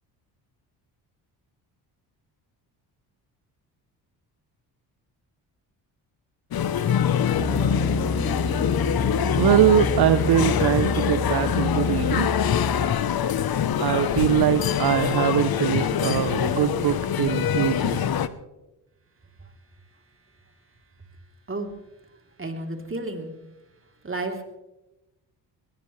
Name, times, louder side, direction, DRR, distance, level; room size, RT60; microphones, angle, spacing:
sound 1, 6.5-18.3, left 8 dB, 50° left, 1.0 m, -24 dB
sound 2, 7.3-12.9, equal, 5° left, 3.2 m, -30 dB
voice 1, 9.4-12.3 13.8-18.1, right 11 dB, 50° right, 12 dB, 0.9 m, -22 dB
voice 2, 22.1-23.3 24.0-24.4, right 2 dB, 25° right, 3 dB, 3.5 m, -32 dB
21.5 x 18.5 x 3.3 m, 0.99 s
supercardioid pair, 55°, 48 cm